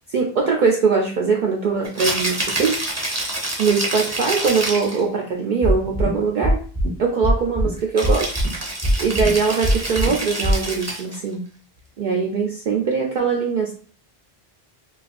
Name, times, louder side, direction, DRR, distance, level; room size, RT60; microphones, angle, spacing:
voice 1, 0.1-2.8 3.6-6.6 7.0-8.4 9.0-11.4 12.0-13.7, right 5 dB, 60° right, 0 dB, 0.6 m, -21 dB
Rattle (instrument), 1.8-5.0 8.0-11.2, right 2 dB, 20° right, 0.6 m, -27 dB
sound 1, 5.6-6.1 6.4-6.9 7.2-7.7 8.0-8.5 8.8-9.3 9.6-10.1 10.4-10.5, equal, 25° left, 0.6 m, -19 dB
4.0 x 2.4 x 2.4 m, 0.42 s
omnidirectional pair, 1.0 m